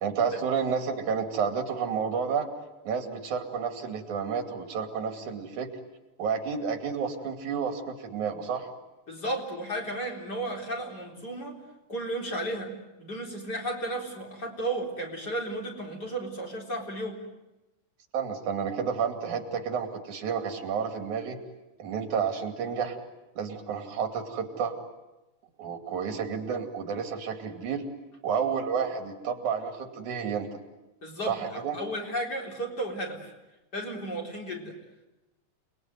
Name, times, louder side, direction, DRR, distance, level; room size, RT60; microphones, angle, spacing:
voice 1, 0.0-2.5 2.8-5.7 6.2-8.7 18.1-21.4 21.8-23.0 23.4-24.7 25.6-27.9 28.2-30.5 31.3-31.8, right 6 dB, 85° right, 5 dB, 4.1 m, -30 dB
voice 2, 9.1-11.6 11.9-12.7 13.0-17.2 31.0-33.3 33.7-34.7, right 1 dB, 35° left, 0 dB, 4.5 m, -34 dB
29.5 x 21.0 x 9.4 m, 1.0 s
omnidirectional pair, 3.4 m